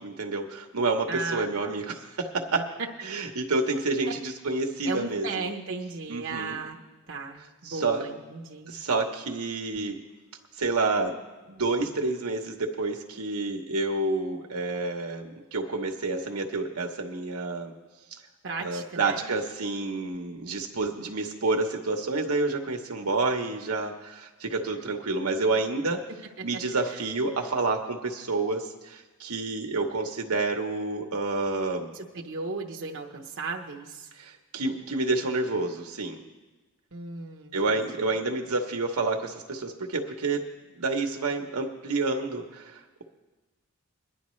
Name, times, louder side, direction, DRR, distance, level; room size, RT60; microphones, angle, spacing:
voice 1, 0.0-2.7 3.0-5.5 6.1-6.6 7.6-8.1 8.7-10.0 10.5-11.2 11.5-17.7 18.1-18.2 18.6-26.0 26.4-32.0 34.1-36.2 37.5-40.4 40.8-43.0, right 3 dB, 90° right, 3 dB, 1.0 m, -29 dB
voice 2, 1.1-1.7 2.5-2.6 4.8-6.8 7.1-8.7 18.4-19.3 26.9-27.0 31.9-34.1 36.9-38.0, right 3 dB, 60° right, 0 dB, 0.9 m, -36 dB
23.0 x 11.0 x 3.2 m, 1.2 s
head